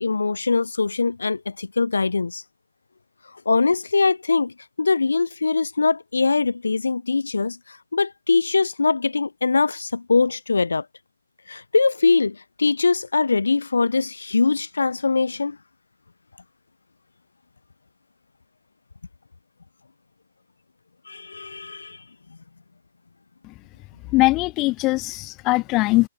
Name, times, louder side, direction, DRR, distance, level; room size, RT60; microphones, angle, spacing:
voice 1, 0.0-2.4 3.5-10.9 11.5-15.6 21.1-22.0, left 4 dB, 80° left, 0.4 m, -22 dB
voice 2, 24.1-26.1, left 21 dB, 30° left, 0.7 m, -21 dB
figure-of-eight pair, 125°, 0 cm